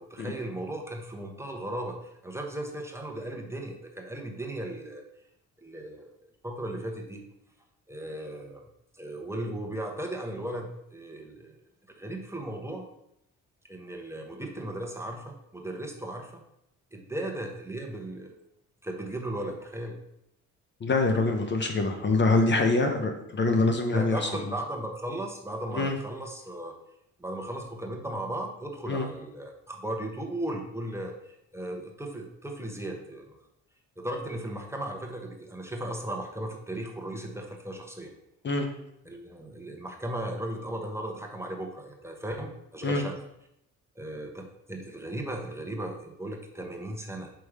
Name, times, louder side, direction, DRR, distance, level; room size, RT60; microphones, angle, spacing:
voice 1, 0.0-2.0 2.2-5.0 5.6-6.1 6.4-7.2 7.9-8.6 9.0-11.6 12.0-12.9 13.7-16.4 16.9-18.3 18.8-19.9 22.7-22.9 23.9-26.7 27.2-33.4 34.0-38.1 39.0-43.2 44.0-47.3, right 1 dB, 10° right, 1 dB, 1.0 m, -36 dB
voice 2, 20.8-24.5 25.7-25.9 28.9-29.1 38.4-38.7 42.8-43.0, left 3 dB, 35° left, 4 dB, 0.9 m, -25 dB
6.0 x 3.5 x 4.8 m, 0.79 s
cardioid pair, 90°, 30 cm